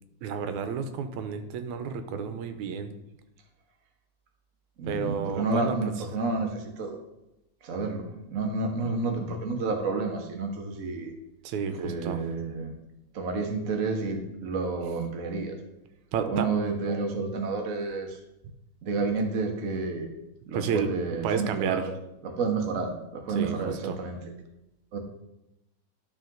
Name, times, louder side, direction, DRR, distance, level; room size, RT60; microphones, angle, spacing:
voice 1, 0.2-2.9 4.9-5.8 11.4-12.2 16.1-16.5 20.5-21.8 23.4-24.0, right 6 dB, 85° right, 8 dB, 2.0 m, -31 dB
voice 2, 4.8-7.0 7.6-11.1 11.8-12.7 13.1-15.6 16.2-18.2 18.8-20.1 20.5-21.9 22.2-24.2 24.9-25.0, right 3 dB, 60° right, 2 dB, 0.8 m, -30 dB
12.0 x 4.2 x 3.9 m, 0.91 s
omnidirectional pair, 3.3 m